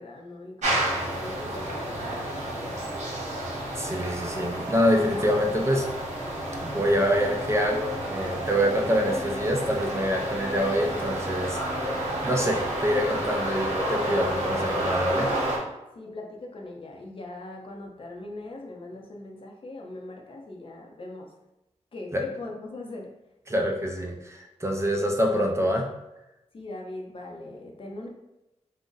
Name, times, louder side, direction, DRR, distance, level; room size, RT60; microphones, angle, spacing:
voice 1, 0.0-2.7 15.9-21.3 21.9-23.1 26.5-28.1, left 2 dB, 45° left, 0 dB, 0.6 m, -41 dB
sound 1, 0.6-15.6, right 1 dB, 80° right, 0.9 m, -30 dB
voice 2, 3.8-5.9 6.6-11.6 12.2-15.3 22.1-22.2 23.5-25.9, equal, 25° right, 1 dB, 0.5 m, -25 dB
2.5 x 2.0 x 3.8 m, 0.95 s
cardioid pair, 70°, 12 cm